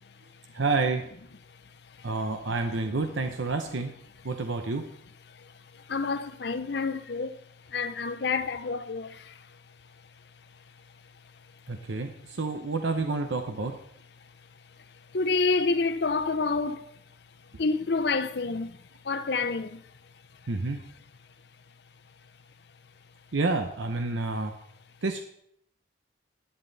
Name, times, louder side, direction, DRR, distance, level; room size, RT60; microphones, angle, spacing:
voice 1, 0.5-1.0 2.0-3.9 4.2-4.9 11.7-13.8 20.5-20.8 23.3-24.5 25.0-25.2, right 3 dB, 80° right, 0.8 m, -29 dB
voice 2, 5.4-7.4 7.7-9.4 15.1-16.9 17.6-18.8 19.0-19.8, left 4 dB, 60° left, 0.6 m, -28 dB
11.0 x 9.6 x 4.0 m
head